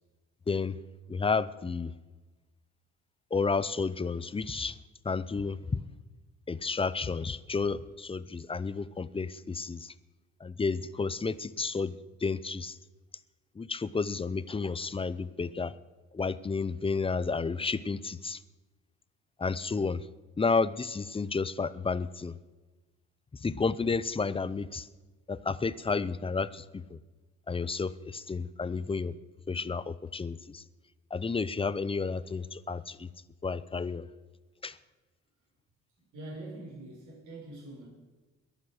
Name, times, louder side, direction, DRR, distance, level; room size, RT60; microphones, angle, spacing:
voice 1, 0.5-0.8 1.1-1.9 3.3-4.8 5.0-5.8 6.5-9.9 10.4-11.9 12.2-12.8 13.6-15.7 16.1-18.4 19.4-20.0 20.4-22.4 23.3-24.9 25.3-27.0 27.5-29.1 29.5-30.6 31.1-33.1 33.4-34.1 34.6-34.8, left 4 dB, 20° left, 16 dB, 0.6 m, -31 dB
voice 2, 36.0-37.9, right 2 dB, 80° right, -5 dB, 5.9 m, -44 dB
22.0 x 7.4 x 6.5 m, 1.2 s
cardioid pair, 90°, 30 cm